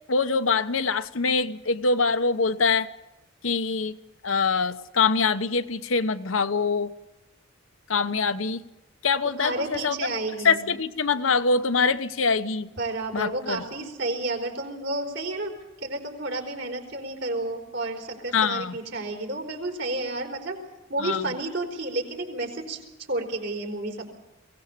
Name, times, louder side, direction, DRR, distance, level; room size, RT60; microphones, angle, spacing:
voice 1, 0.1-2.9 3.4-3.9 4.2-6.9 7.9-8.6 9.0-9.9 10.4-12.7 13.1-13.6 18.3-18.7 21.0-21.3, left 4 dB, 75° left, 10 dB, 1.0 m, -24 dB
voice 2, 9.2-10.6 12.8-15.5 15.8-20.6 20.9-22.8 23.1-24.1, right 2 dB, 65° right, 3 dB, 4.4 m, -31 dB
22.5 x 17.5 x 6.8 m, 1.0 s
head